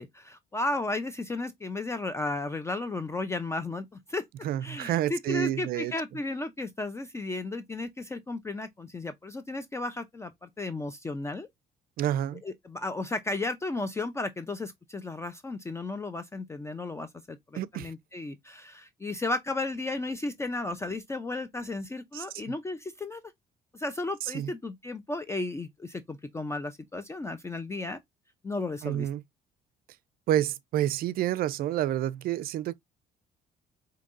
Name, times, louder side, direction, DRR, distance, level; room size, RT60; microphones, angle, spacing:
voice 1, 0.0-4.2 4.6-11.5 12.4-23.2 23.7-28.0 28.4-29.1, left 2 dB, 15° left, 0.4 m, -34 dB
voice 2, 4.4-5.9 12.0-12.4 17.5-17.9 22.1-22.5 24.2-24.5 28.8-29.2 30.3-32.7, right 12 dB, 60° right, 0.4 m, -29 dB
5.1 x 2.7 x 2.4 m
cardioid pair, 110°, 17 cm